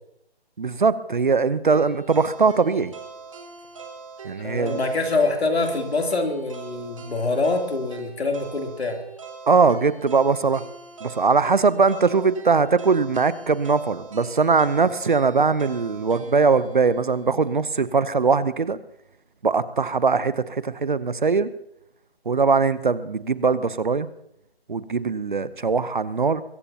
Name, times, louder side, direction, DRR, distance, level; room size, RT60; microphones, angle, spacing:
voice 1, 0.6-2.9 4.2-4.8 9.5-10.6 11.0-18.8 19.4-21.5 22.3-24.1 24.7-26.4, right 4 dB, 50° right, 16 dB, 0.8 m, -21 dB
sound 1, 1.7-17.8, right 5 dB, 30° right, 1.7 m, -42 dB
voice 2, 4.4-9.0, left 3 dB, 75° left, 3 dB, 3.2 m, -25 dB
22.5 x 16.0 x 2.9 m, 0.76 s
figure-of-eight pair, 170°, 32 cm